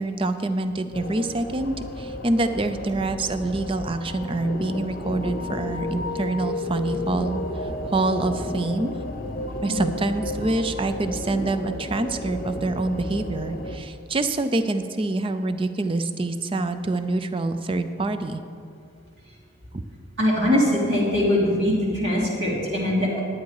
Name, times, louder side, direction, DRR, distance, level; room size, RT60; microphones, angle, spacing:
voice 1, 0.0-7.4 7.9-9.0 9.6-18.4, right 2 dB, 25° right, 10 dB, 0.5 m, -26 dB
sound 1, 0.9-13.8, left 1 dB, 45° left, 0.7 m, -32 dB
voice 2, 20.2-23.2, left 1 dB, 60° right, -6 dB, 2.5 m, -22 dB
11.0 x 9.2 x 4.8 m, 2.4 s
head